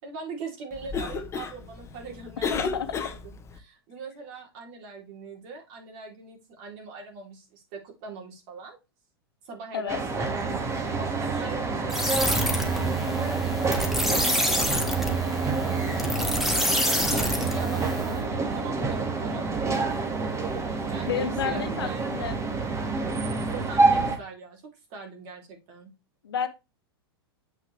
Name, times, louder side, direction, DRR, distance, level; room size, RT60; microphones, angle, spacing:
voice 1, 0.0-8.8 9.4-20.2 20.9-22.1 23.5-25.9, right 4 dB, 45° right, 3.3 m, -42 dB
Cough, 0.7-3.6, left 5 dB, 20° left, 1.1 m, -33 dB
voice 2, 2.5-3.0 9.7-10.0 21.1-22.4 26.2-26.5, left 8 dB, 70° left, 1.2 m, -30 dB
sound 1, 9.9-24.2, right 3 dB, 20° right, 1.9 m, -28 dB
sound 2, 11.9-18.2, right 1 dB, ahead, 1.8 m, -27 dB
8.2 x 5.8 x 3.3 m
figure-of-eight pair, 100°, 13 cm